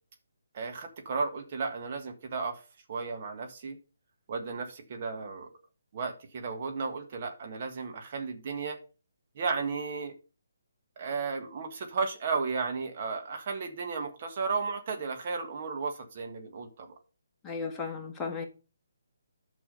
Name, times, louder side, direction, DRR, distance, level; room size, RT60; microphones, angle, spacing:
voice 1, 0.5-2.6 2.9-3.8 4.3-5.5 5.9-8.8 9.4-10.1 11.0-16.9, right 4 dB, 40° right, 1.7 m, -34 dB
voice 2, 17.4-18.4, left 5 dB, 10° left, 1.8 m, -35 dB
9.0 x 6.1 x 5.4 m
figure-of-eight pair, 145°, 0 cm